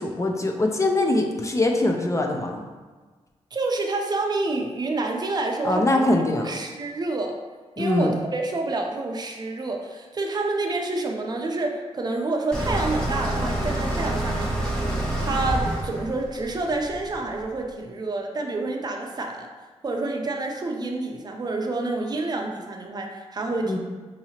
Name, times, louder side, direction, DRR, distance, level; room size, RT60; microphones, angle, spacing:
voice 1, 0.0-2.6 5.6-6.5 7.8-8.1 23.6-23.8, left 2 dB, 25° left, 2 dB, 0.4 m, -22 dB
voice 2, 3.5-6.0 6.4-7.3 7.8-14.8 15.2-19.5 19.8-23.8, right 2 dB, 35° right, 2 dB, 0.5 m, -28 dB
sound 1, 12.5-17.5, right 1 dB, 5° left, 0.8 m, -27 dB
4.7 x 2.8 x 2.8 m, 1.4 s
wide cardioid pair, 110°, 11 cm